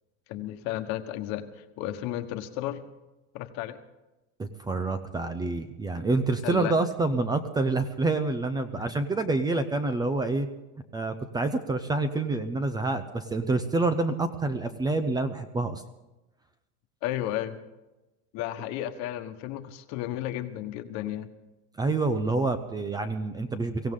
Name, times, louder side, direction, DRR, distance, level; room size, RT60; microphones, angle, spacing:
voice 1, 0.3-2.8 3.3-3.8 6.4-6.7 8.7-8.9 17.0-17.6 18.3-21.3, left 13 dB, 50° left, 9 dB, 1.4 m, -33 dB
voice 2, 4.4-10.5 10.9-15.8 21.8-23.9, right 3 dB, 10° right, 10 dB, 0.6 m, -27 dB
23.5 x 16.5 x 3.8 m, 1.0 s
cardioid pair, 160°, 34 cm